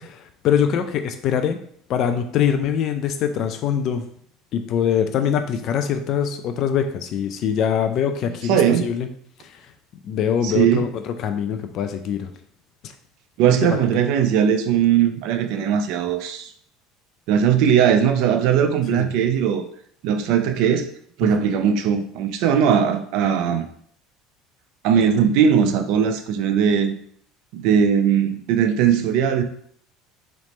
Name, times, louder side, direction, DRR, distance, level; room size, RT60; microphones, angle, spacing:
voice 1, 0.0-1.6 1.9-4.0 4.5-9.1 9.4-9.7 10.0-12.3 12.8-12.9 13.5-13.8 18.9-19.1 21.2-21.3, left 8 dB, 50° left, 0.4 m, -23 dB
voice 2, 8.5-8.9 10.4-10.8 13.4-16.5 17.3-19.6 20.0-20.9 21.2-23.6 24.8-26.9 27.5-29.4, right 8 dB, 70° right, 0.6 m, -19 dB
3.1 x 3.1 x 4.2 m
supercardioid pair, 120°, 0 cm